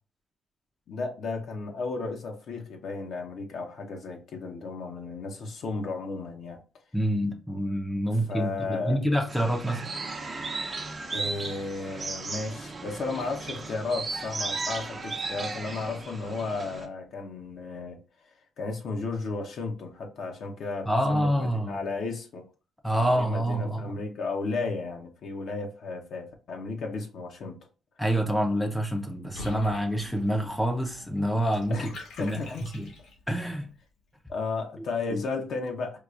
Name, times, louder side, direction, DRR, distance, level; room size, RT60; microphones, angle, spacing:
voice 1, 0.9-6.6 8.1-9.0 11.1-18.0 18.6-22.4 22.9-27.6 31.7-31.9 32.2-32.7 34.3-36.0, left 3 dB, 65° left, 0.8 m, -34 dB
voice 2, 6.9-9.9 20.9-21.8 22.8-23.9 28.0-31.9 32.2-32.4 32.7-32.9 33.3-33.7 35.1-35.2, equal, 5° left, 0.6 m, -27 dB
sound 1, 9.3-16.9, right 3 dB, 35° right, 0.7 m, -35 dB
Water / Bathtub (filling or washing), 29.3-33.4, left 3 dB, 85° left, 1.6 m, -45 dB
4.7 x 2.3 x 2.4 m
cardioid pair, 90°, 0 cm